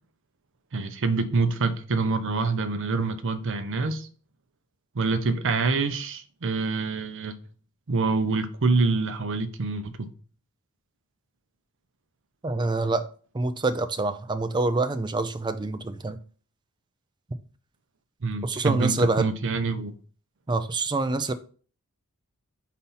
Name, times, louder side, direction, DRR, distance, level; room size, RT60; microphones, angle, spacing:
voice 1, 0.7-4.1 4.9-7.4 7.9-10.1 18.2-19.9, right 3 dB, 60° right, 0.6 m, -26 dB
voice 2, 12.4-13.0 13.3-16.2 18.4-19.3 20.5-21.3, right 2 dB, 20° right, 0.4 m, -26 dB
4.1 x 4.1 x 5.6 m
head